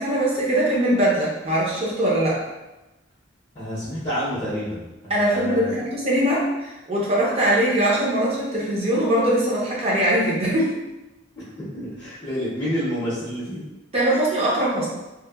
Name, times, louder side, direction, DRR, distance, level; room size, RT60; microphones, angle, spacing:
voice 1, 0.0-2.4 5.1-10.7 13.9-14.9, right 1 dB, 30° right, -5 dB, 0.5 m, -21 dB
voice 2, 3.5-5.8 11.4-11.5 11.7-13.6, equal, 25° left, -11 dB, 0.6 m, -29 dB
2.8 x 2.1 x 2.2 m, 1.0 s
head